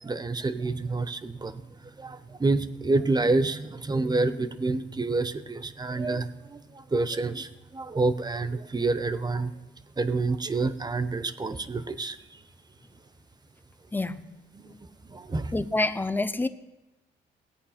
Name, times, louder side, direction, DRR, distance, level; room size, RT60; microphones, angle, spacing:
voice 1, 0.0-1.6 2.0-9.5 10.0-12.2 14.5-14.7 15.0-15.5, right 3 dB, 20° right, 13 dB, 0.8 m, -28 dB
voice 2, 15.5-16.5, left 2 dB, 10° left, 12 dB, 0.7 m, -27 dB
17.5 x 8.5 x 5.8 m, 1.1 s
cardioid pair, 90°, 20 cm